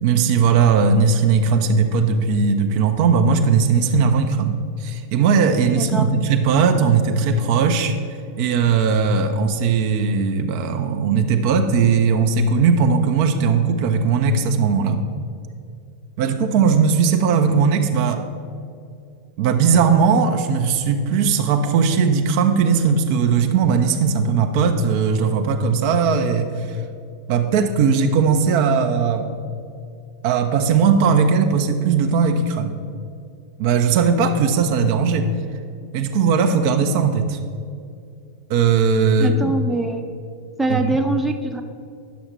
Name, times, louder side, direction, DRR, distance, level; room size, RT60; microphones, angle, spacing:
voice 1, 0.0-7.9 8.4-15.0 16.2-18.2 19.4-26.8 27.3-29.3 30.2-32.8 33.6-35.3 35.9-37.4 38.5-39.6 40.7-41.0, right 5 dB, 45° right, 6 dB, 0.6 m, -18 dB
voice 2, 5.7-6.0 39.2-40.0 40.6-41.6, right 2 dB, 10° right, 4 dB, 0.7 m, -23 dB
10.5 x 6.5 x 4.3 m, 2.4 s
figure-of-eight pair, 90°, 0 cm